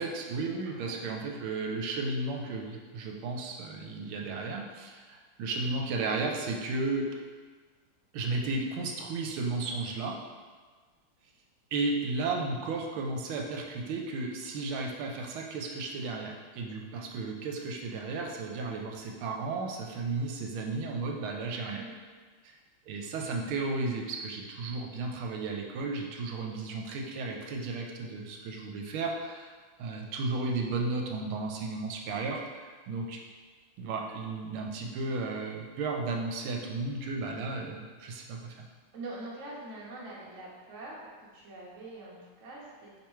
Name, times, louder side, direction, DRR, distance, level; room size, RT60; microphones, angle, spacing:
voice 1, 0.0-7.1 8.1-10.2 11.7-21.8 22.4-22.6 22.9-29.5 29.8-33.2 33.8-38.6, right 3 dB, 80° right, 1 dB, 1.4 m, -34 dB
voice 2, 0.6-1.1 21.7-22.0 38.9-43.0, right 2 dB, 55° right, -4 dB, 0.8 m, -44 dB
4.4 x 3.5 x 3.0 m, 1.5 s
omnidirectional pair, 2.3 m